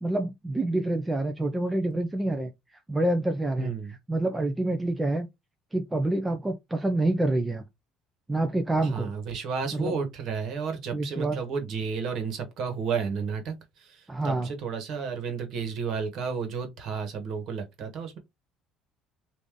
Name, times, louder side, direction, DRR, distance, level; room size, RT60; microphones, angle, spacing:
voice 1, 0.0-2.5 2.9-3.7 4.1-5.3 5.7-7.6 8.3-9.1 9.7-9.9 10.9-11.4 14.1-14.5, right 2 dB, 15° right, 0.6 m, -27 dB
voice 2, 3.6-3.9 8.8-18.2, right 5 dB, 60° right, 1.4 m, -32 dB
3.1 x 2.6 x 3.6 m
supercardioid pair, 90°, 0 cm